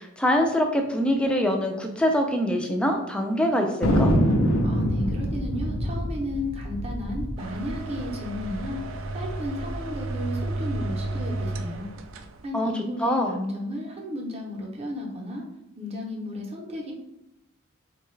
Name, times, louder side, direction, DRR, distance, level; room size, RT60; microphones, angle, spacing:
voice 1, 0.0-4.1 12.5-12.7 13.0-13.4, equal, 5° left, 3 dB, 0.4 m, -24 dB
Thunder, 3.8-8.6 8.9-9.0 9.2-9.8 10.2-11.4, equal, 80° left, 0.6 m, -25 dB
voice 2, 4.6-8.8 9.1-11.9 12.4-15.4 15.8-16.9, left 1 dB, 30° right, -1 dB, 0.7 m, -33 dB
sound 1, 7.4-12.5, right 2 dB, 70° right, 0.3 m, -33 dB
3.8 x 2.2 x 3.1 m, 0.85 s
head